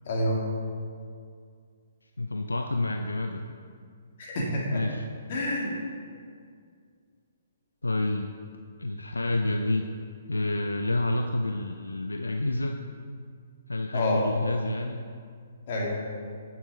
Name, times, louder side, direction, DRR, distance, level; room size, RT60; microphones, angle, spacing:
voice 1, 0.1-0.4 4.2-4.8 5.3-5.7 13.9-14.3 15.7-16.0, left 1 dB, 50° left, -3 dB, 2.3 m, -28 dB
voice 2, 2.2-3.6 4.7-5.0 7.8-8.4 8.8-9.9 10.3-12.8 13.7-15.0, left 2 dB, 85° left, 4 dB, 0.4 m, -28 dB
9.2 x 6.3 x 4.9 m, 2.2 s
figure-of-eight pair, 125°, 0 cm